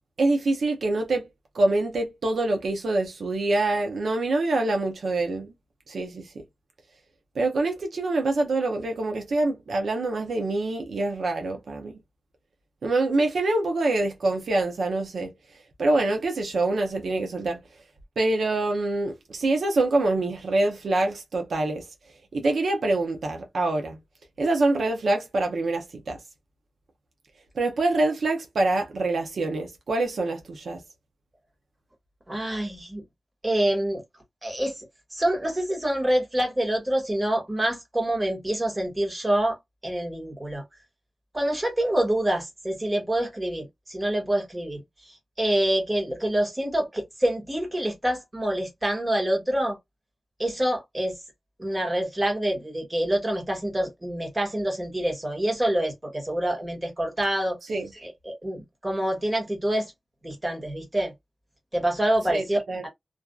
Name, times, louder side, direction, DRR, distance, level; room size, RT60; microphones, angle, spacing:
voice 1, 0.2-1.3 1.5-5.5 5.9-6.2 7.4-11.9 12.8-15.3 15.8-17.6 18.2-21.9 22.3-24.0 24.4-26.2 27.6-30.8 57.7-57.9 62.3-62.8, right 2 dB, 70° right, 0.6 m, -25 dB
voice 2, 32.3-33.0 33.4-34.0 34.4-34.8 35.1-39.6 39.8-40.6 41.3-44.8 45.4-49.8 50.4-51.2 51.6-57.6 57.9-59.9 60.2-61.1 61.7-62.9, right 1 dB, 15° right, 1.3 m, -26 dB
2.5 x 2.3 x 2.2 m
wide cardioid pair, 125°, 0 cm